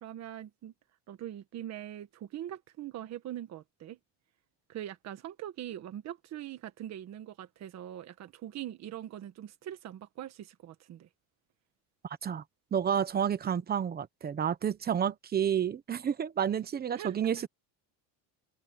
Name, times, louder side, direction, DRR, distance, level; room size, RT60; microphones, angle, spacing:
voice 1, 0.0-0.7 1.1-4.0 4.7-11.1 17.0-17.1, right 12 dB, 35° right, 1.4 m, -42 dB
voice 2, 12.7-17.5, right 8 dB, 20° right, 1.0 m, -30 dB
open air
cardioid pair, 165°, 44 cm